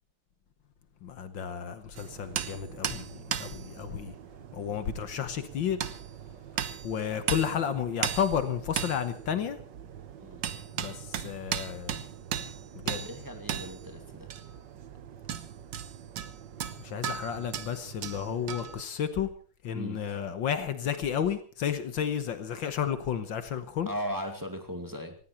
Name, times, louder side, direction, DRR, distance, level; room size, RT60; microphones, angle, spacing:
voice 1, 1.0-4.1 4.5-5.8 6.8-9.6 10.8-12.0 12.7-13.1 16.8-19.3 19.6-23.9, left 8 dB, 70° left, 10 dB, 1.9 m, -32 dB
sound 1, 2.0-18.8, right 9 dB, 65° right, 1.6 m, -37 dB
voice 2, 12.9-14.3 19.7-20.1 23.9-25.2, equal, 10° right, 5 dB, 2.1 m, -37 dB
19.0 x 16.0 x 4.4 m, 0.43 s
omnidirectional pair, 2.3 m